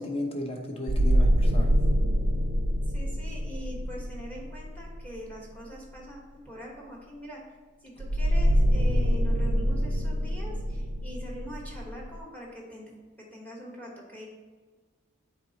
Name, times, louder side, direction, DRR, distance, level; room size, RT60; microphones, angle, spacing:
voice 1, 0.0-1.7, left 1 dB, 30° left, 2 dB, 0.8 m, -34 dB
sound 1, 0.9-5.3 8.0-12.1, equal, 55° right, 0.5 m, -25 dB
voice 2, 2.9-7.4 7.8-12.9 13.2-14.3, equal, 10° left, -2 dB, 1.1 m, -43 dB
8.7 x 4.1 x 2.8 m, 1.4 s
head